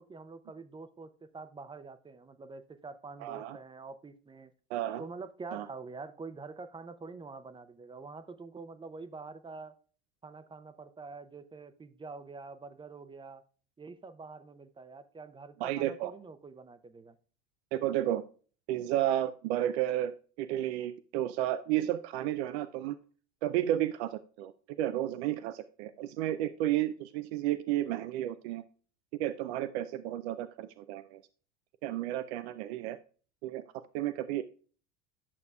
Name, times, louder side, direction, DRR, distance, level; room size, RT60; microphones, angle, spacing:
voice 1, 0.0-4.5 5.0-9.7 10.2-13.4 13.8-17.2, right 4 dB, 15° right, 12 dB, 0.6 m, -46 dB
voice 2, 3.2-3.6 4.7-5.0 5.5-5.7 15.6-16.1 17.7-18.2 18.7-23.0 23.4-24.5 24.8-28.6 29.2-31.2 31.8-33.0 33.4-33.6 33.9-34.4, right 13 dB, 75° right, 12 dB, 0.5 m, -32 dB
11.0 x 6.6 x 2.3 m, 0.40 s
hypercardioid pair, 85°, 33 cm